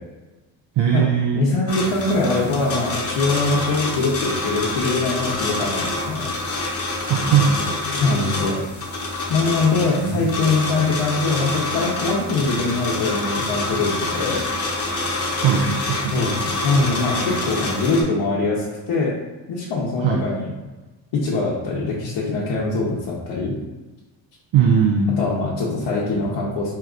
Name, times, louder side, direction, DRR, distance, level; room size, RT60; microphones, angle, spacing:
voice 1, 0.8-1.4 7.1-7.7 9.9-10.2 15.4-16.2 20.0-20.2 24.5-25.1, right 7 dB, 75° right, 1 dB, 0.5 m, -19 dB
voice 2, 1.3-6.2 7.9-8.6 9.3-14.4 16.1-16.4 16.6-19.1 19.5-20.5 21.1-23.5 25.2-26.8, left 3 dB, 85° left, -5 dB, 0.8 m, -22 dB
sound 1, 1.7-18.0, left 2 dB, 30° left, 0.7 m, -26 dB
4.7 x 2.8 x 2.4 m, 1.2 s
wide cardioid pair, 160°, 46 cm